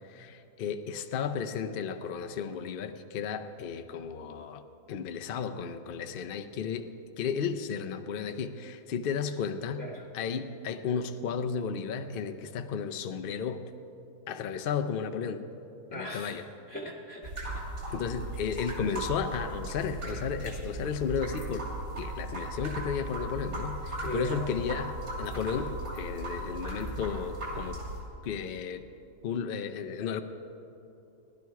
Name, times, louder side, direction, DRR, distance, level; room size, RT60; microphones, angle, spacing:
voice 1, 0.1-4.6 4.9-6.9 7.2-9.8 10.1-13.7 14.3-15.4 15.9-16.5 17.9-21.7 22.0-24.9 25.2-27.8 28.2-28.9 29.2-30.2, left 6 dB, 75° left, 7 dB, 0.5 m, -33 dB
voice 2, 15.9-17.5 24.0-24.4, right 2 dB, 5° left, 0 dB, 0.8 m, -39 dB
sound 1, 17.2-28.0, right 1 dB, 60° right, 3.2 m, -37 dB
16.0 x 11.5 x 4.7 m, 2.8 s
omnidirectional pair, 1.7 m